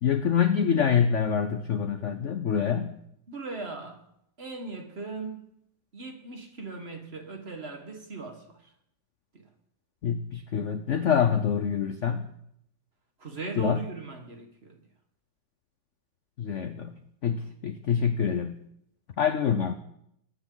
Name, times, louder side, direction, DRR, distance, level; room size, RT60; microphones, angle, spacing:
voice 1, 0.0-2.9 10.0-12.3 13.6-13.8 16.4-16.9 17.2-18.6 19.2-19.7, left 7 dB, 60° left, 0.8 m, -26 dB
voice 2, 3.3-4.0 4.4-5.5 5.9-8.7 9.3-9.5 13.2-14.8, right 3 dB, 35° right, 1.6 m, -39 dB
20.0 x 9.7 x 3.9 m
omnidirectional pair, 2.0 m